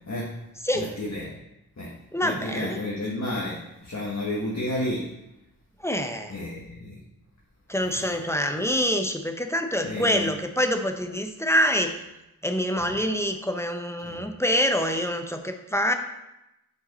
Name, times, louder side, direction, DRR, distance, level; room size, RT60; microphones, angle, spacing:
voice 1, 0.8-1.3 1.8-1.9 2.2-5.0 6.3-6.9 9.8-10.3 14.0-14.2, left 1 dB, 45° left, -5 dB, 1.3 m, -31 dB
voice 2, 2.1-2.8 5.8-6.4 7.7-12.0 12.4-15.9, equal, 5° left, 5 dB, 0.6 m, -26 dB
6.9 x 5.2 x 4.1 m, 0.91 s
wide cardioid pair, 75°, 37 cm